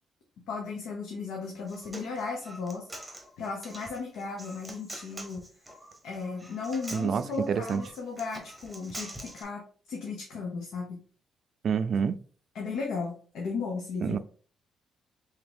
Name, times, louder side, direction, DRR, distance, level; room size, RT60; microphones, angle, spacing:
voice 1, 0.5-5.5 6.0-11.0 12.5-14.2, left 4 dB, 80° left, 0 dB, 0.8 m, -36 dB
Human voice, 1.5-9.4, right 1 dB, 5° right, 0.9 m, -45 dB
voice 2, 6.9-7.8 11.6-12.2 14.0-14.2, right 6 dB, 55° right, 12 dB, 0.3 m, -27 dB
3.6 x 2.8 x 3.5 m, 0.43 s
cardioid pair, 90°, 0 cm